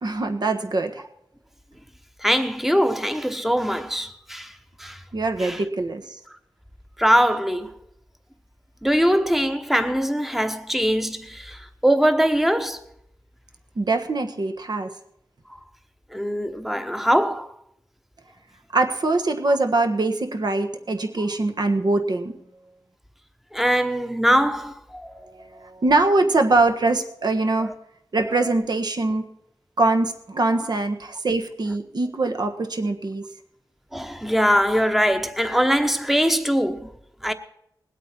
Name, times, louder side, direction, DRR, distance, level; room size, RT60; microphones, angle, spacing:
voice 1, 0.0-1.0 5.1-6.2 13.7-14.9 18.7-22.4 25.1-27.7 28.1-29.2 29.8-33.2, right 2 dB, 60° right, 1.4 m, -23 dB
voice 2, 2.2-4.5 4.8-5.0 5.4-5.6 7.0-7.7 8.8-12.8 16.1-17.5 23.5-25.1 30.5-30.7 33.9-36.9 37.2-37.3, equal, 5° right, 1.1 m, -22 dB
20.0 x 8.3 x 4.4 m
wide cardioid pair, 70°, 8 cm